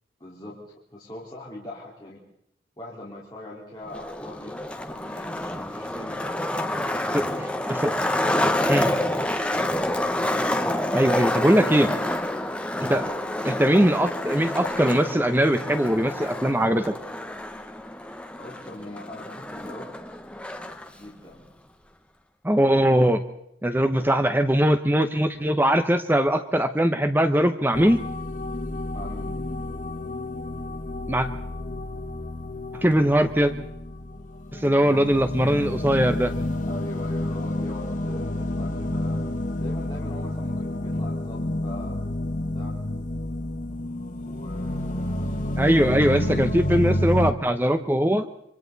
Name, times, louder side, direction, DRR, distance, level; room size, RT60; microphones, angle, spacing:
voice 1, 0.2-2.2 2.8-7.3 10.1-11.0 18.4-20.2 20.9-21.5 23.7-24.2 28.9-29.4 36.7-39.2 39.6-42.1 42.5-42.8 44.2-45.8, left 1 dB, 25° left, -6 dB, 4.2 m, -42 dB
Skateboard, 3.9-20.9, left 1 dB, 5° left, 1.2 m, -28 dB
voice 2, 7.1-8.0 8.7-8.9 10.9-11.9 12.8-13.1 13.4-16.9 22.4-23.2 23.6-28.0 31.1-31.3 32.8-33.5 34.5-36.3 45.6-48.3, equal, 10° right, 8 dB, 0.9 m, -21 dB
sound 1, 27.7-47.3, left 1 dB, 45° left, 1.5 m, -29 dB
27.0 x 25.0 x 4.1 m, 0.74 s
head